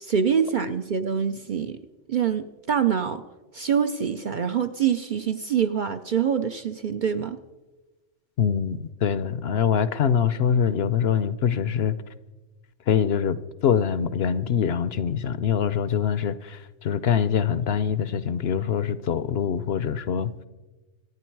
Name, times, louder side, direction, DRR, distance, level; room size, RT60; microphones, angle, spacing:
voice 1, 0.0-1.8 2.1-3.2 3.5-7.4, right 7 dB, 50° right, 9 dB, 0.6 m, -25 dB
voice 2, 8.4-12.0 12.9-13.4 13.6-20.3, left 8 dB, 60° left, 15 dB, 0.8 m, -24 dB
26.0 x 9.6 x 4.6 m, 1.2 s
omnidirectional pair, 1.3 m